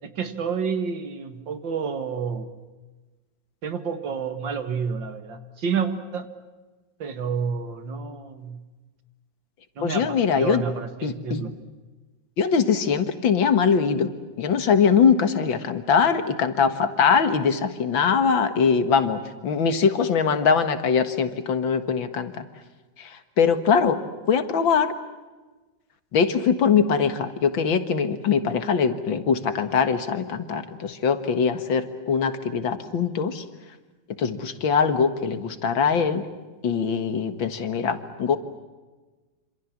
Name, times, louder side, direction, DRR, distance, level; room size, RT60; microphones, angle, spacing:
voice 1, 0.0-2.5 3.6-6.3 7.0-8.6 9.8-11.5, right 6 dB, 75° right, 9 dB, 2.5 m, -29 dB
voice 2, 9.8-10.6 11.0-11.4 12.4-14.1 14.4-22.5 23.0-24.9 26.1-33.4 34.2-36.3 36.6-38.4, left 6 dB, 85° left, 10 dB, 2.4 m, -22 dB
27.0 x 27.0 x 7.4 m, 1.3 s
omnidirectional pair, 2.1 m